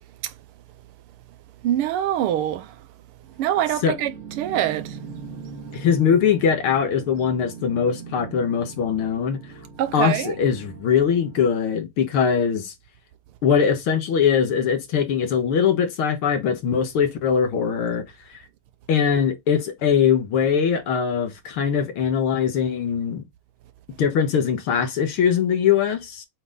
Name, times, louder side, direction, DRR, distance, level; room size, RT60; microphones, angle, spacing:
voice 1, 1.6-2.7 3.4-5.0 9.8-10.4, right 12 dB, 85° right, 1.7 m, -24 dB
sound 1, 3.2-11.5, right 5 dB, 40° right, 1.7 m, -40 dB
voice 2, 5.7-9.4 9.9-12.7 13.4-18.0 18.9-23.2 24.0-26.3, left 7 dB, 75° left, 2.1 m, -21 dB
7.8 x 4.0 x 3.8 m
omnidirectional pair, 2.4 m